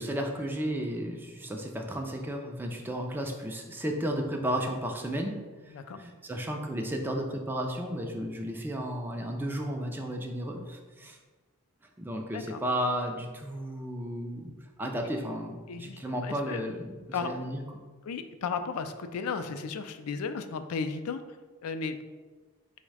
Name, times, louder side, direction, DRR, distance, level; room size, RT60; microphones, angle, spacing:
voice 1, 0.0-5.4 5.7-11.2 12.0-14.5 14.8-17.8, equal, 10° right, 2 dB, 0.3 m, -33 dB
voice 2, 5.7-6.0 12.3-12.6 15.7-16.7 17.1-17.3 18.0-21.2 21.6-22.0, left 5 dB, 75° left, 9 dB, 0.4 m, -34 dB
4.7 x 2.1 x 4.7 m, 1.3 s
head